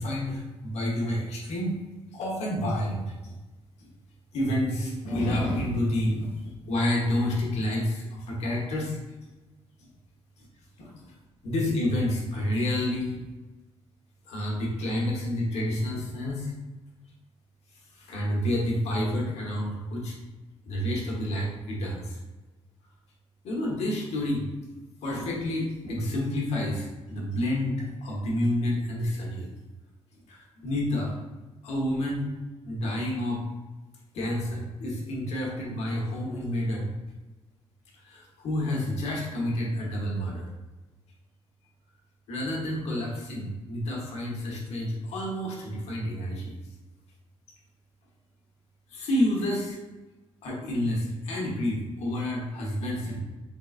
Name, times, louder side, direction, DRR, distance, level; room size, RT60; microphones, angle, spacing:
voice 1, 0.0-1.8 2.1-3.3 3.8-3.9 4.3-9.3 9.8-9.9 10.4-10.5 10.8-11.1 11.4-13.2 14.2-16.5 17.9-20.2 20.6-22.2 23.4-24.5 25.0-29.5 30.3-31.1 31.6-32.3 32.6-33.4 34.1-36.9 37.9-40.5 42.3-46.5 48.9-49.8 50.4-53.2, left 1 dB, 80° left, -3 dB, 1.1 m, -29 dB
3.8 x 3.5 x 2.4 m, 1.2 s
cardioid pair, 85°, 11 cm